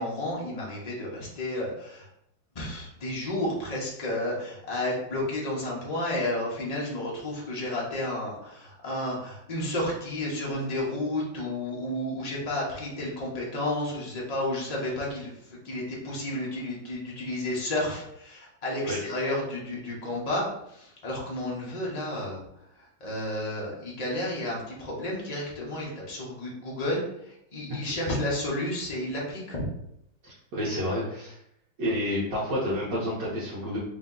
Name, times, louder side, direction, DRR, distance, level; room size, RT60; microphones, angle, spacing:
voice 1, 0.0-2.1 2.5-22.4 23.0-29.7, left 1 dB, 75° left, -4 dB, 0.3 m, -31 dB
voice 2, 30.2-31.4 31.8-33.8, equal, 60° right, -7 dB, 1.5 m, -29 dB
3.6 x 2.7 x 3.7 m, 0.76 s
omnidirectional pair, 2.3 m